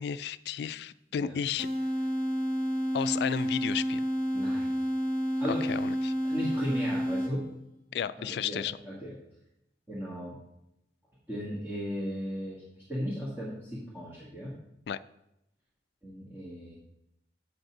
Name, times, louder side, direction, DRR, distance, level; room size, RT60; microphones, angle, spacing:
voice 1, 0.0-1.7 2.9-4.0 5.5-6.1 7.9-8.8 14.9-15.0, left 8 dB, 65° left, 16 dB, 0.3 m, -33 dB
sound 1, 1.6-7.6, equal, 30° right, 1.0 m, -30 dB
voice 2, 4.3-4.7 5.4-5.7 6.2-7.4 8.2-9.1 9.9-10.3 11.3-12.6 12.9-14.5 16.0-16.7, equal, 10° right, -8 dB, 1.7 m, -36 dB
8.2 x 5.3 x 6.1 m, 0.83 s
head